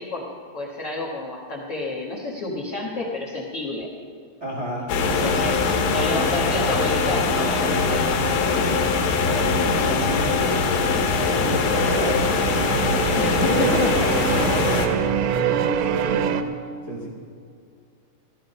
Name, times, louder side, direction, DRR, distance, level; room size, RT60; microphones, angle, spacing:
voice 1, 0.0-3.9 5.2-8.8 13.1-13.9, left 2 dB, 60° left, -3 dB, 1.6 m, -30 dB
voice 2, 4.4-4.9 5.2-5.4 9.2-12.3 12.7-13.2 13.7-13.8 14.3-16.4 16.9-17.1, equal, 40° right, -4 dB, 0.9 m, -31 dB
sound 1, 4.9-14.9, left 4 dB, 80° left, 3.5 m, -22 dB
sound 2, 11.1-16.4, right 8 dB, 85° right, 3.0 m, -25 dB
16.0 x 13.0 x 5.5 m, 2.2 s
omnidirectional pair, 5.0 m